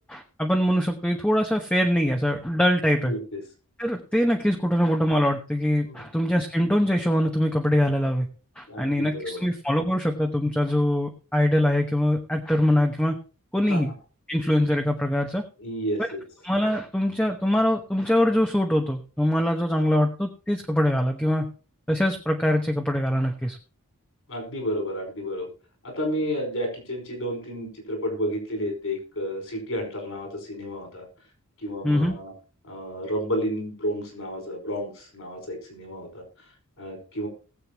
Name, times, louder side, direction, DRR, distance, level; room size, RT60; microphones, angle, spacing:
voice 1, 0.1-3.1 3.8-8.3 8.6-13.2 13.5-13.9 14.3-15.4 16.4-21.5 21.9-23.6 31.8-32.1, equal, 5° left, 2 dB, 1.0 m, -23 dB
voice 2, 8.7-9.4 13.7-13.8 15.6-16.0 24.3-25.5 25.8-31.0 31.6-32.3 32.6-36.2 36.8-37.3, equal, 65° left, 3 dB, 5.2 m, -31 dB
19.5 x 7.9 x 3.0 m, 0.36 s
head